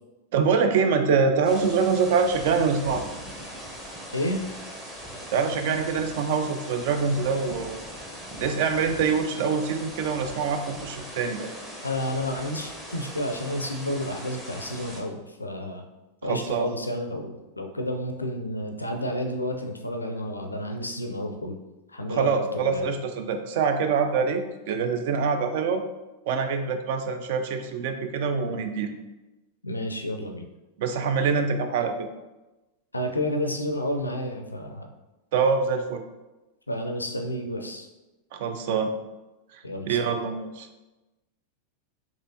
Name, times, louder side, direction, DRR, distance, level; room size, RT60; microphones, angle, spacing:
voice 1, 0.3-3.0 5.3-7.8 8.4-11.5 16.2-16.7 22.1-25.8 26.3-28.9 30.8-31.9 35.3-36.0 38.3-38.9 39.5-40.7, right 5 dB, 50° right, 7 dB, 0.4 m, -25 dB
sound 1, 1.4-15.0, equal, 10° right, 0.7 m, -40 dB
voice 2, 4.1-4.4 11.8-15.8 16.2-21.6 21.9-22.4 22.7-22.8 29.6-30.5 32.9-34.9 36.7-37.9 39.6-40.0, left 1 dB, 80° left, 4 dB, 0.4 m, -30 dB
4.0 x 2.9 x 2.7 m, 1.1 s
figure-of-eight pair, 90°, 0 cm